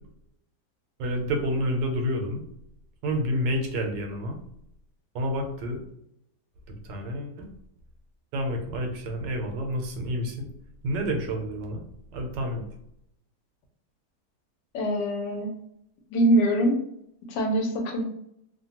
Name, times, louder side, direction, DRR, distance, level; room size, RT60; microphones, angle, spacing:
voice 1, 1.0-2.4 3.0-4.4 5.1-5.8 6.7-7.5 8.3-10.5 10.8-11.8 12.1-12.6, equal, 90° right, 3 dB, 1.3 m, -29 dB
voice 2, 14.7-15.5 16.1-16.8 17.3-18.0, right 1 dB, 90° left, 3 dB, 1.3 m, -23 dB
3.1 x 2.2 x 2.8 m, 0.77 s
omnidirectional pair, 1.8 m